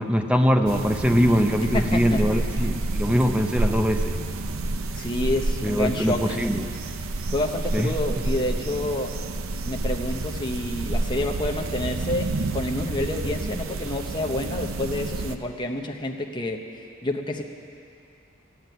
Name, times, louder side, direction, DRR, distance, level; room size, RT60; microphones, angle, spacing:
voice 1, 0.0-4.2 5.6-6.7 7.7-7.9, equal, 5° right, 5 dB, 0.6 m, -22 dB
sound 1, 0.7-15.4, right 2 dB, 70° right, 0.6 m, -29 dB
voice 2, 1.7-2.2 4.9-6.4 7.3-9.1 9.6-16.6 17.0-17.4, left 1 dB, 20° left, 1 dB, 0.8 m, -28 dB
13.5 x 9.6 x 9.3 m, 2.6 s
head